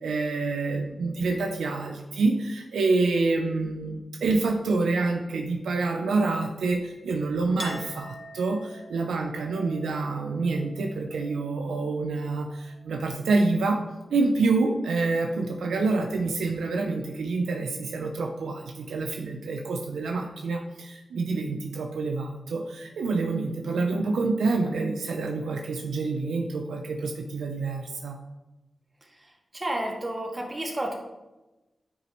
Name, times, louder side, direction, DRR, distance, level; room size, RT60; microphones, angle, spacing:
voice 1, 0.0-13.8 14.1-28.2, right 3 dB, 90° right, 3 dB, 0.6 m, -27 dB
Chink clink, 7.6-13.1 13.4-14.3, left 1 dB, 25° left, 1.0 m, -46 dB
voice 2, 29.5-31.0, right 1 dB, 35° right, 0 dB, 2.1 m, -30 dB
9.2 x 6.0 x 3.1 m, 1.0 s
cardioid pair, 40°, 0 cm